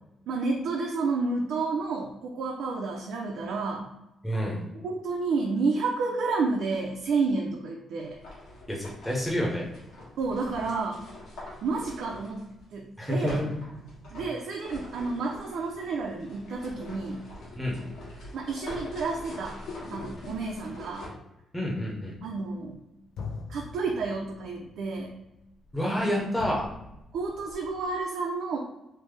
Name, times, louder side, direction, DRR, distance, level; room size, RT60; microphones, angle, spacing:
voice 1, 0.3-3.9 4.8-8.2 10.2-11.0 11.6-12.5 12.7-13.4 14.1-17.2 18.3-19.6 19.9-21.1 22.2-22.8 23.5-25.1 25.8-26.3 27.1-28.6, right 4 dB, 70° right, 0 dB, 0.4 m, -30 dB
voice 2, 4.2-4.6 8.7-9.7 13.0-13.5 17.6-17.8 21.5-22.1 25.7-26.6, equal, 5° left, -4 dB, 0.5 m, -28 dB
sound 1, 8.0-12.6 13.3-21.1, left 2 dB, 90° left, 1.2 m, -44 dB
sound 2, 21.8-22.8 23.2-28.0, left 4 dB, 70° left, 0.3 m, -43 dB
3.2 x 2.0 x 3.2 m, 0.89 s
cardioid pair, 170°, 0 cm